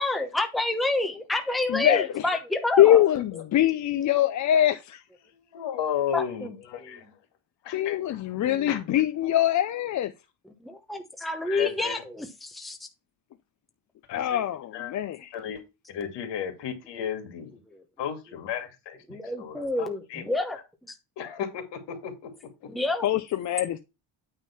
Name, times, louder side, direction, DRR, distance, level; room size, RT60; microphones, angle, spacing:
voice 1, 0.0-3.0 6.1-6.5 8.5-8.7 10.6-12.8 19.1-20.6 22.7-23.0, left 2 dB, ahead, 1.0 m, -28 dB
voice 2, 1.7-2.3 2.8-5.0 7.7-10.1 14.1-15.3 23.0-23.8, left 12 dB, 45° left, 0.6 m, -23 dB
voice 3, 3.1-3.4 5.5-7.0 7.6-9.0 11.4-12.0 14.1-14.4 14.7-14.9 15.3-15.6 15.9-17.5 18.0-20.2 21.2-22.3, left 8 dB, 75° left, 2.4 m, -34 dB
9.1 x 3.8 x 5.8 m
cardioid pair, 175°, 42 cm